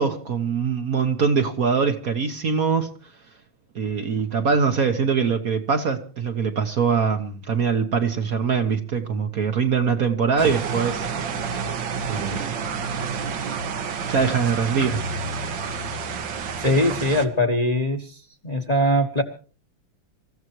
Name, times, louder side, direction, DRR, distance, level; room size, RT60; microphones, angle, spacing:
voice 1, 0.0-2.9 3.7-11.1 12.1-12.6 14.1-15.0, right 5 dB, 50° right, 5 dB, 1.4 m, -23 dB
sound 1, 10.4-17.2, right 5 dB, 70° right, 1.8 m, -29 dB
voice 2, 16.6-18.1 18.4-19.2, equal, 25° left, 5 dB, 1.3 m, -21 dB
27.0 x 14.5 x 3.0 m, 0.37 s
omnidirectional pair, 2.1 m